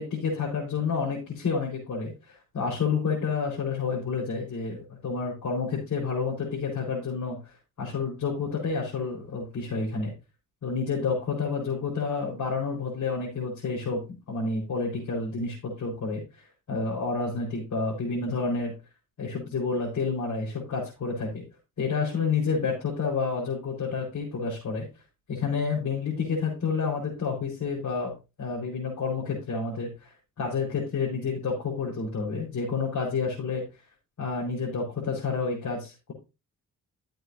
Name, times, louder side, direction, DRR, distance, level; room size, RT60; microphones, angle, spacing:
voice 1, 0.0-10.1 10.6-14.0 14.3-18.7 19.2-21.4 21.8-24.8 25.3-28.1 28.4-30.1 30.4-33.6 34.2-36.1, left 4 dB, 55° left, -5 dB, 4.7 m, -29 dB
14.0 x 7.7 x 2.7 m, 0.28 s
cardioid pair, 105°, 35 cm